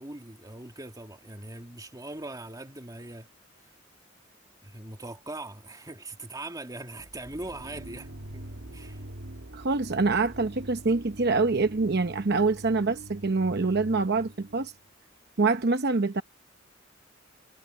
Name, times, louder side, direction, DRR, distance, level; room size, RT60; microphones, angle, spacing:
voice 1, 0.0-3.3 4.6-9.0, right 2 dB, 20° right, 2.2 m, -41 dB
sound 1, 7.0-14.8, right 1 dB, 75° right, 1.6 m, -44 dB
voice 2, 9.5-14.7 15.4-16.2, right 3 dB, 55° right, 0.9 m, -25 dB
head